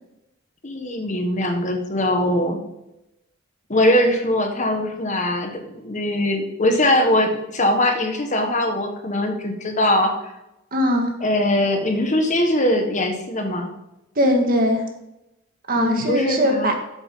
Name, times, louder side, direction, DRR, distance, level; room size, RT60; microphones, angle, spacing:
voice 1, 0.6-2.6 3.7-10.3 11.2-13.7 15.8-16.7, left 1 dB, 40° left, 4 dB, 1.4 m, -21 dB
voice 2, 10.7-11.1 14.2-14.8 15.7-16.7, equal, 45° right, 2 dB, 1.8 m, -20 dB
8.2 x 7.9 x 3.8 m, 0.89 s
head